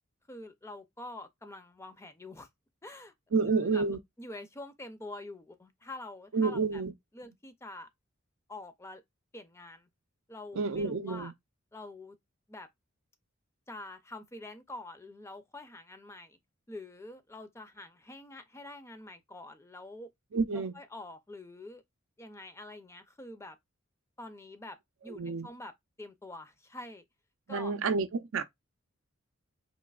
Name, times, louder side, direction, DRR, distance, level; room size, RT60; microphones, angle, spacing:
voice 1, 0.3-2.5 2.8-3.1 3.4-3.9 4.2-6.8 7.1-7.9 8.5-9.0 9.3-9.9 10.3-11.3 11.7-12.2 12.5-12.7 13.7-16.4 16.7-20.1 20.5-21.8 22.2-23.6 24.2-24.8 25.0-25.7 26.0-27.0 27.5-27.7, left 2 dB, 15° left, 0.5 m, -46 dB
voice 2, 3.3-4.0 6.3-6.9 10.5-11.3 20.3-20.7 25.1-25.5 27.5-28.4, right 4 dB, 65° right, 0.5 m, -29 dB
4.1 x 2.9 x 2.3 m
head